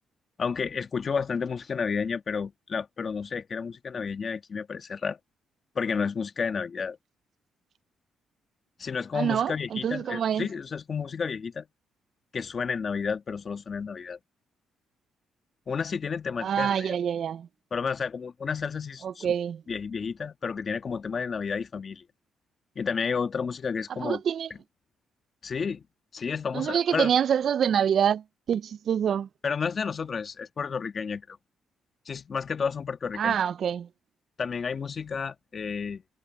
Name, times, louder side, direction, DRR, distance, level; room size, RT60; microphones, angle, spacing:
voice 1, 0.4-5.2 5.7-7.0 8.8-11.7 12.3-14.2 15.7-17.0 17.7-19.3 19.7-22.0 22.7-24.2 25.4-25.8 26.1-27.1 29.4-31.4 32.0-33.4 34.4-36.0, left 5 dB, 40° left, 1.4 m, -31 dB
voice 2, 9.1-10.5 16.4-17.5 19.0-19.6 23.9-24.5 26.5-29.3 33.2-33.9, right 8 dB, 60° right, 0.3 m, -26 dB
cardioid pair, 90°, 0 cm